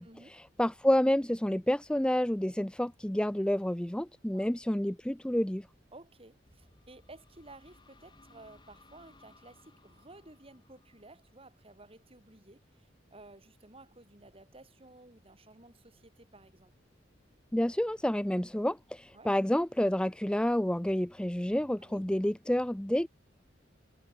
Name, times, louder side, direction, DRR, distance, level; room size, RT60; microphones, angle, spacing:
voice 1, 0.0-5.7 17.5-23.1, left 1 dB, 5° left, 0.5 m, -29 dB
voice 2, 5.9-16.7 19.1-19.3 21.8-22.1, right 2 dB, 30° right, 5.2 m, -55 dB
sound 1, 6.5-12.1, left 2 dB, 25° left, 7.8 m, -62 dB
head